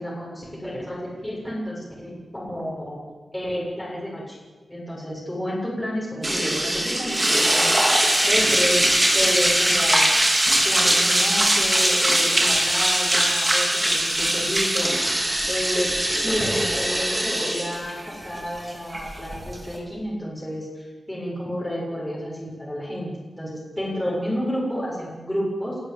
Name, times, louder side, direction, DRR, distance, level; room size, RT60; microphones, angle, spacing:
voice 1, 0.0-3.0 3.3-4.4 4.7-7.8 8.3-10.1 10.6-15.0 15.5-25.8, equal, 5° left, -4 dB, 7.1 m, -30 dB
sound 1, 6.2-19.8, right 1 dB, 15° right, 4.4 m, -21 dB
29.5 x 14.5 x 9.0 m, 1.3 s
wide cardioid pair, 140°, 0 cm